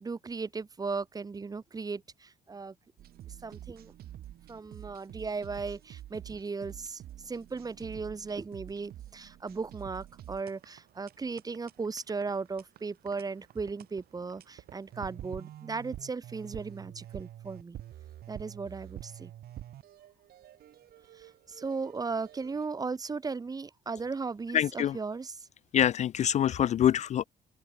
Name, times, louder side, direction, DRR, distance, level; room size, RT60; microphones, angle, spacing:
voice 1, 0.0-2.7 3.3-3.9 4.5-17.8 18.3-19.3 21.1-25.5, right 4 dB, 20° right, 1.3 m, -37 dB
sound 1, 3.0-22.7, right 12 dB, 65° right, 7.7 m, -48 dB
voice 2, 24.5-25.0 25.7-27.2, left 10 dB, 45° left, 0.4 m, -25 dB
open air
cardioid pair, 110°, 17 cm